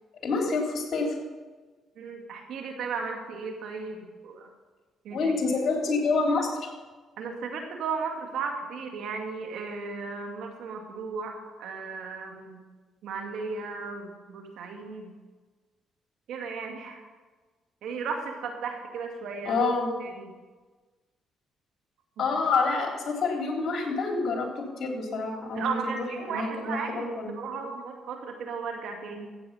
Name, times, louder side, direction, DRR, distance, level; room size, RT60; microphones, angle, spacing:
voice 1, 0.2-1.2 5.1-6.7 19.4-19.9 22.2-27.6, left 3 dB, 55° left, 0 dB, 3.4 m, -28 dB
voice 2, 2.0-4.5 5.0-5.3 7.2-12.6 13.0-15.1 16.3-17.0 17.8-19.6 20.0-20.3 22.2-22.3 25.5-29.3, right 5 dB, 75° right, 3 dB, 2.3 m, -35 dB
15.0 x 8.2 x 5.5 m, 1.3 s
cardioid pair, 80°, 0 cm